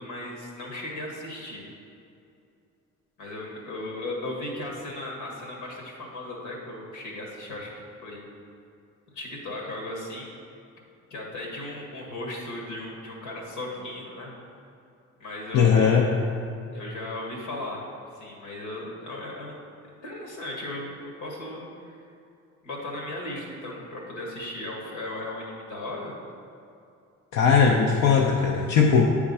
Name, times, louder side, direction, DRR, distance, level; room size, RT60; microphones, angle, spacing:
voice 1, 0.0-1.6 3.2-8.3 9.1-10.3 11.1-14.3 15.2-16.0 16.7-17.8 18.1-19.5 19.9-22.0 22.6-26.1, left 1 dB, 85° left, -1 dB, 1.7 m, -36 dB
voice 2, 15.5-16.1 27.3-29.1, left 6 dB, 65° left, 0 dB, 0.7 m, -19 dB
8.6 x 3.6 x 5.4 m, 2.6 s
cardioid pair, 90°, 30 cm